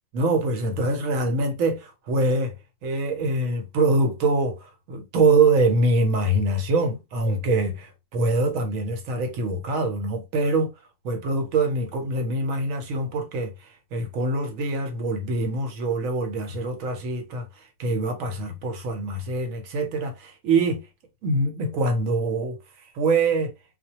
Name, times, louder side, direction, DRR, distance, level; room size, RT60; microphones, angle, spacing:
voice 1, 0.1-2.6 2.8-10.7 11.0-13.5 13.9-17.5 17.8-20.8 21.2-22.6 22.9-23.5, right 2 dB, 75° right, 1.1 m, -24 dB
2.2 x 2.1 x 2.8 m
omnidirectional pair, 1.4 m